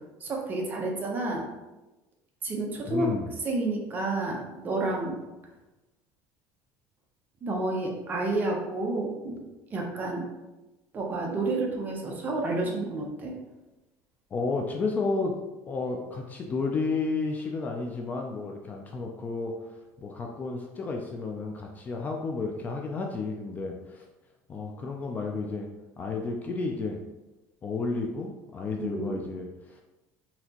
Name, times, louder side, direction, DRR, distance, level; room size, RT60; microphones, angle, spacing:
voice 1, 0.2-1.5 2.4-3.1 3.4-5.1 7.4-9.4 9.7-10.2 10.9-13.4 28.8-29.2, right 2 dB, 25° right, 0 dB, 0.7 m, -30 dB
voice 2, 2.8-3.3 14.3-15.4 15.7-19.5 20.0-24.0 24.5-25.7 26.0-27.0 27.6-29.8, left 3 dB, 25° left, 1 dB, 0.3 m, -32 dB
4.1 x 2.8 x 2.8 m, 1.1 s
cardioid pair, 155°, 7 cm